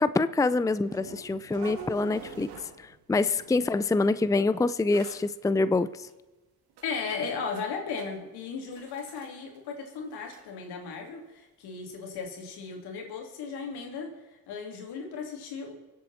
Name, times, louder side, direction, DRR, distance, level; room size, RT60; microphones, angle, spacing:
voice 1, 0.0-2.5 2.8-6.1, left 3 dB, 10° left, 15 dB, 0.5 m, -26 dB
sound 1, 0.8-3.0 3.3-3.8 4.6-4.7 4.9-5.2 6.1-6.2 6.7-7.7 8.0-8.2 8.7-9.3 9.5-9.6 10.0-10.5 12.1-12.2 12.7-12.8, right 6 dB, 85° right, 2.1 m, -45 dB
voice 2, 6.8-14.1 14.5-15.7, left 5 dB, 85° left, 2 dB, 3.1 m, -36 dB
25.0 x 8.5 x 4.3 m, 1.2 s
supercardioid pair, 70°, 38 cm